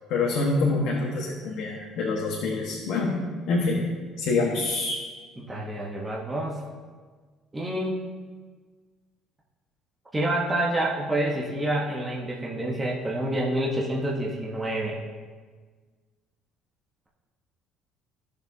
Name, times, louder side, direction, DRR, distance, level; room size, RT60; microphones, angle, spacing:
voice 1, 0.1-3.2 3.5-3.8 4.2-5.0, left 3 dB, 65° left, -3 dB, 1.4 m, -26 dB
voice 2, 5.4-6.7 7.5-8.0 10.1-15.0, right 1 dB, 10° right, -4 dB, 1.1 m, -28 dB
15.5 x 6.7 x 2.8 m, 1.5 s
cardioid pair, 165°, 0 cm